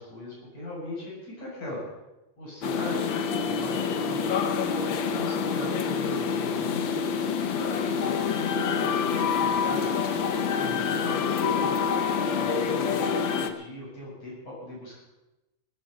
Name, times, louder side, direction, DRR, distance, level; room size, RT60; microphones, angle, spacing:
voice 1, 0.0-1.8 2.4-3.0 3.4-4.4 5.1-7.1 7.5-9.9 10.5-11.8 12.3-13.1 13.4-15.0, left 1 dB, 50° left, -4 dB, 8.7 m, -39 dB
sound 1, 2.6-13.5, left 6 dB, 85° left, 1.0 m, -27 dB
19.0 x 10.0 x 6.8 m, 1.0 s
omnidirectional pair, 3.7 m